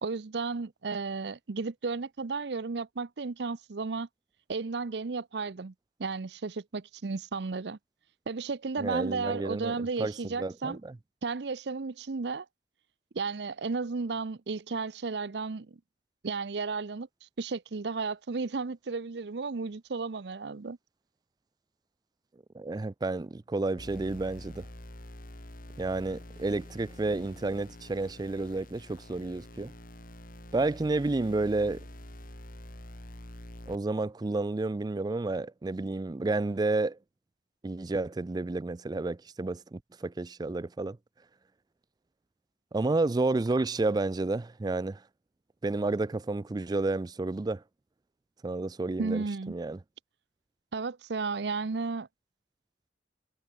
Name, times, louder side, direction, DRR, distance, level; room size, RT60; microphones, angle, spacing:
voice 1, 0.0-4.1 4.5-5.7 6.0-7.8 8.3-10.8 11.2-12.5 13.1-15.8 16.2-20.8 49.0-49.5 50.7-52.1, right 4 dB, 70° right, 0.6 m, -33 dB
voice 2, 8.8-10.9 22.5-24.6 25.8-29.7 30.5-31.8 33.7-37.0 37.6-41.0 42.7-45.0 45.6-47.6 48.4-49.8, right 2 dB, 20° right, 0.4 m, -31 dB
sound 1, 23.8-33.8, left 1 dB, 50° left, 3.7 m, -47 dB
head